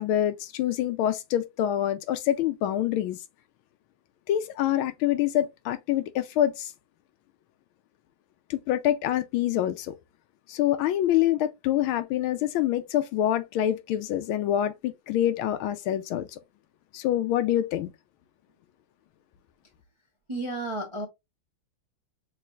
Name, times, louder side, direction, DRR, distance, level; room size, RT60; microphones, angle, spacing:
voice 1, 0.0-3.2 4.3-6.7 8.5-9.9 10.5-16.3 16.9-17.9, left 12 dB, 80° left, 1.4 m, -26 dB
voice 2, 20.3-21.1, right 2 dB, 40° right, 0.4 m, -32 dB
6.4 x 3.0 x 2.4 m
omnidirectional pair, 2.3 m